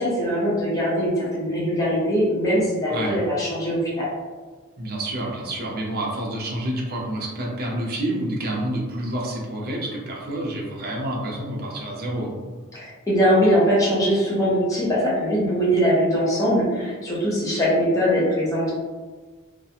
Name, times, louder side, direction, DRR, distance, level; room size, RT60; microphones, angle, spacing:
voice 1, 0.0-4.1 12.7-18.7, equal, 15° left, -7 dB, 0.6 m, -21 dB
voice 2, 2.9-3.2 4.8-12.4, right 1 dB, 45° right, -2 dB, 0.5 m, -28 dB
2.4 x 2.1 x 2.8 m, 1.4 s
head